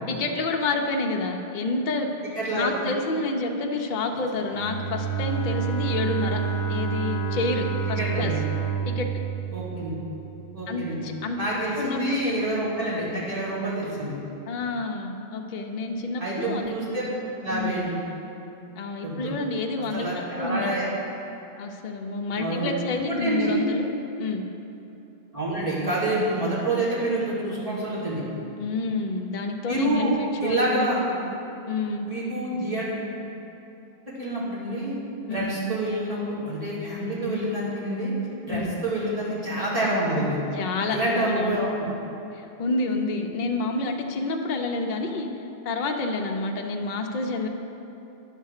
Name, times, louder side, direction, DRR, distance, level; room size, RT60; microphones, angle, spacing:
voice 1, 0.1-2.1 2.5-6.4 6.7-8.3 8.9-9.1 10.7-11.5 11.8-12.4 14.5-16.8 17.5-17.8 18.7-20.1 20.4-20.7 21.6-23.9 24.2-24.4 28.6-30.9 31.7-32.1 35.3-35.5 38.5-38.7 40.5-41.6 42.3-45.3 45.6-47.5, left 3 dB, 55° left, 3 dB, 0.7 m, -28 dB
voice 2, 2.4-2.7 8.0-8.4 9.5-9.9 10.5-11.0 11.4-14.1 16.2-17.0 17.4-18.0 19.0-19.3 19.9-20.9 22.3-22.8 23.1-23.6 25.3-28.2 29.7-30.1 30.4-31.1 32.0-32.9 34.2-34.9 35.3-38.1 38.5-40.4 40.9-41.7, right 1 dB, 35° right, -9 dB, 2.3 m, -27 dB
Bowed string instrument, 4.5-10.4, right 7 dB, 15° left, 1.3 m, -29 dB
10.0 x 3.7 x 6.4 m, 2.9 s
omnidirectional pair, 1.0 m